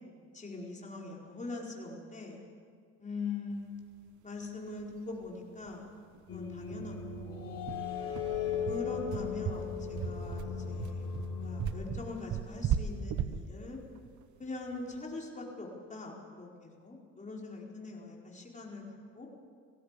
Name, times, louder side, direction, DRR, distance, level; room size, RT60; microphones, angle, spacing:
voice 1, 0.3-2.4 3.0-3.7 4.2-5.9 6.3-7.7 8.6-13.8 14.4-18.8 19.1-19.3, left 3 dB, 25° left, -2 dB, 4.6 m, -42 dB
sound 1, 4.8-4.9 5.2-5.3 5.6-5.8 6.1-6.2 6.7-15.1, right 8 dB, 70° right, 1.2 m, -37 dB
sound 2, 6.3-12.0, left 6 dB, 50° left, 3.9 m, -37 dB
19.5 x 16.5 x 8.4 m, 2.1 s
cardioid pair, 90°, 30 cm